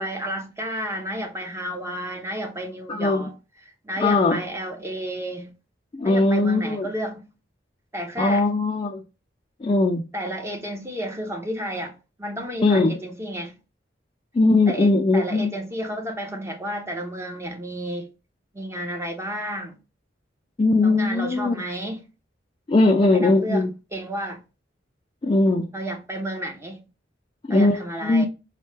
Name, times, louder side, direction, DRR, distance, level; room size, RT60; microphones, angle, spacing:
voice 1, 0.0-3.3 3.8-5.6 6.0-7.3 7.9-8.5 10.1-13.5 14.7-18.1 18.5-19.8 20.8-22.0 22.8-24.4 25.7-26.8 27.5-28.3, right 1 dB, 15° right, 0.7 m, -31 dB
voice 2, 2.9-3.2 4.0-4.4 5.9-6.9 8.2-9.0 9.6-10.0 12.6-13.0 14.3-15.5 20.6-21.6 22.7-23.7 25.2-25.7 27.5-28.3, left 2 dB, 25° left, 0.3 m, -20 dB
4.2 x 2.1 x 3.2 m
head